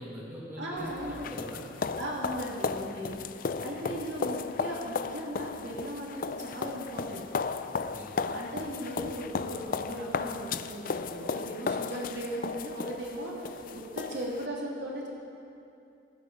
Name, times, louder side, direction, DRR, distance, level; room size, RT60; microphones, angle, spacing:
voice 1, 0.0-1.7 7.7-8.1, equal, 10° right, -4 dB, 1.8 m, -42 dB
voice 2, 0.6-1.3 2.0-7.3 8.3-15.1, equal, 70° right, -3 dB, 2.5 m, -38 dB
sound 1, 0.8-14.5, left 5 dB, 50° left, 0.4 m, -35 dB
15.5 x 11.5 x 5.2 m, 2.6 s
head